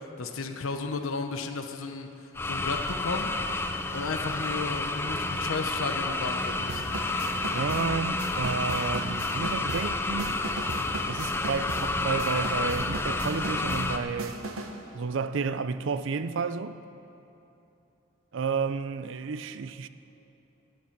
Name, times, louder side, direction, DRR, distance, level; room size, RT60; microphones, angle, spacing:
voice 1, 0.0-3.3 3.9-6.9, left 3 dB, 80° left, 0.8 m, -34 dB
sound 1, 2.3-14.0, left 2 dB, 10° left, 0.4 m, -30 dB
sound 2, 6.7-14.8, right 2 dB, 85° right, 0.9 m, -38 dB
voice 2, 7.5-10.4 11.1-14.4 14.9-16.8 18.3-19.9, right 5 dB, 65° right, 0.4 m, -31 dB
13.0 x 9.7 x 5.9 m
head